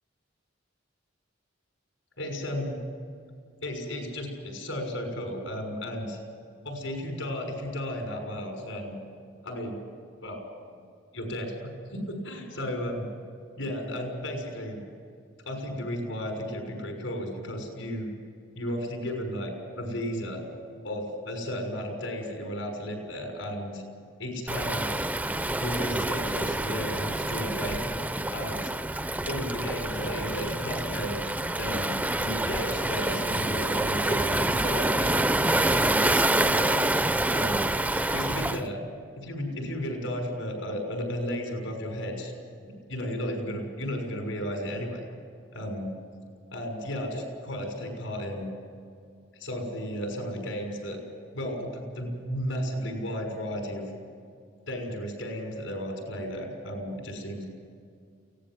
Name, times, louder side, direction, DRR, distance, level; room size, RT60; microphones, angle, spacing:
voice 1, 2.2-2.8 3.6-6.2 6.6-8.9 9.4-9.8 10.2-10.4 11.1-13.1 13.6-14.8 15.4-18.1 18.5-19.5 19.8-20.4 20.8-23.8 24.2-24.9 25.5-27.8 28.3-28.7 29.3-31.2 31.6-35.2 35.7-36.9 37.3-37.7 38.1-38.8 39.1-42.3 42.6-45.0 45.5-45.9 46.5-48.5 49.3-51.0 51.3-53.8 54.7-57.5, equal, 85° left, 2 dB, 6.3 m, -34 dB
Waves surf, 24.5-38.6, right 1 dB, 10° right, 0.5 m, -27 dB
23.5 x 17.5 x 7.9 m, 2.3 s
head